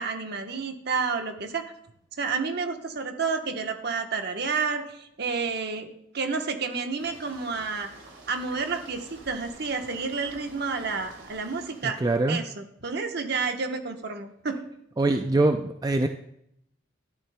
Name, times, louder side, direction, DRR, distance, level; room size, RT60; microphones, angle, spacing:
voice 1, 0.0-1.7 2.2-7.9 8.3-12.0 12.3-14.6, right 4 dB, 55° right, 5 dB, 1.0 m, -30 dB
sound 1, 7.0-11.9, right 2 dB, 85° right, 2.6 m, -49 dB
voice 2, 11.8-12.4 15.0-16.1, right 2 dB, 20° right, 6 dB, 0.4 m, -23 dB
12.5 x 11.0 x 2.2 m, 0.74 s
head